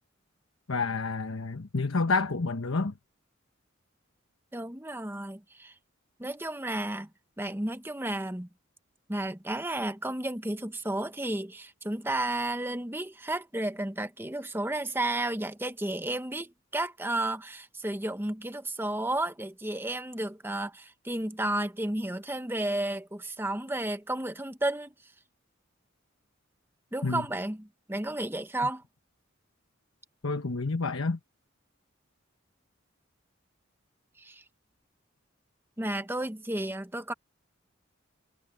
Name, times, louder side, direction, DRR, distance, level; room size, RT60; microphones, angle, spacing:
voice 1, 0.7-2.9 27.0-27.2 30.2-31.2, left 3 dB, 85° left, 1.2 m, -29 dB
voice 2, 4.5-5.7 6.2-7.1 7.4-8.5 9.1-24.9 26.9-28.8 34.2-34.4 35.8-37.1, right 1 dB, 10° right, 1.0 m, -32 dB
head